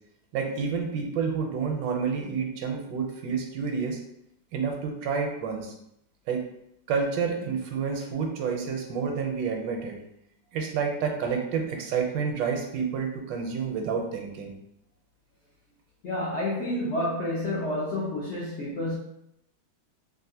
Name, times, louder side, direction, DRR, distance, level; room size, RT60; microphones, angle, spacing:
voice 1, 0.3-4.0 4.5-5.7 6.3-6.4 6.9-10.0 10.5-14.5, right 6 dB, 80° right, 3 dB, 1.3 m, -29 dB
voice 2, 16.0-19.0, left 1 dB, 75° left, -6 dB, 0.6 m, -29 dB
3.5 x 2.4 x 2.7 m, 0.77 s
omnidirectional pair, 2.0 m